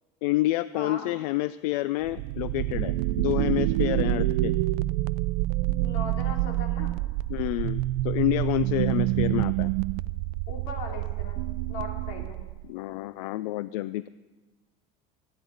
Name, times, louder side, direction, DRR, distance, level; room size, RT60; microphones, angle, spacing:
voice 1, 0.2-4.6 7.3-9.7 12.6-14.1, left 17 dB, 85° left, 16 dB, 0.4 m, -28 dB
voice 2, 0.7-1.1 5.8-6.9 10.5-11.4 11.7-12.4, left 4 dB, 60° left, 1 dB, 3.0 m, -38 dB
sound 1, 2.0-12.7, right 17 dB, 80° right, 0.4 m, -27 dB
27.5 x 9.4 x 4.0 m, 1.2 s
cardioid pair, 165°, 19 cm